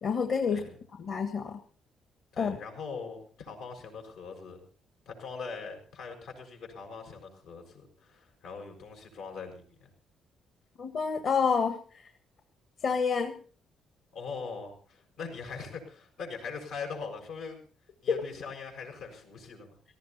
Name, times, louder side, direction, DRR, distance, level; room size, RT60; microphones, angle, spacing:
voice 1, 0.0-0.7 1.0-1.6 2.4-2.6 10.8-12.1 12.8-13.4 18.1-18.2, left 5 dB, 60° left, 7 dB, 1.7 m, -28 dB
voice 2, 2.3-4.6 5.0-9.9 14.1-17.7 18.0-19.7, left 5 dB, 90° left, 2 dB, 6.6 m, -41 dB
18.0 x 15.0 x 4.3 m, 0.41 s
cardioid pair, 90°, 0 cm